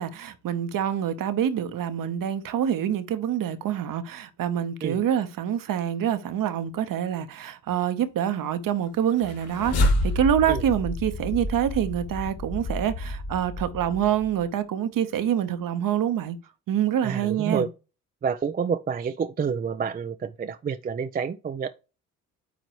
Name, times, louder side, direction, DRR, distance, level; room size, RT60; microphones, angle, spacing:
voice 1, 0.0-16.4 16.7-17.7, right 9 dB, 50° right, 1.0 m, -26 dB
sound 1, 9.1-14.4, left 1 dB, 55° left, 2.5 m, -29 dB
voice 2, 17.0-17.7 18.2-21.7, right 6 dB, 20° right, 0.5 m, -28 dB
9.4 x 3.9 x 3.1 m
hypercardioid pair, 50°, 43 cm